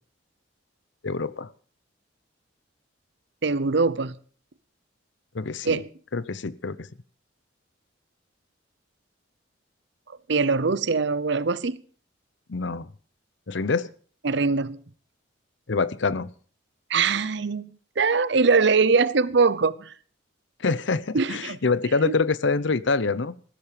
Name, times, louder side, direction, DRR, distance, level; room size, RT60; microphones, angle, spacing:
voice 1, 1.0-1.5 5.3-5.8 6.1-6.9 12.5-12.9 13.5-13.9 15.7-16.3 20.6-23.4, left 4 dB, 65° left, 18 dB, 0.7 m, -25 dB
voice 2, 3.4-4.2 5.6-5.9 10.3-11.8 14.2-14.8 16.9-17.7 18.0-19.9 21.1-21.6 22.0-22.2, right 4 dB, 60° right, 18 dB, 0.7 m, -22 dB
15.0 x 13.0 x 5.1 m, 0.43 s
head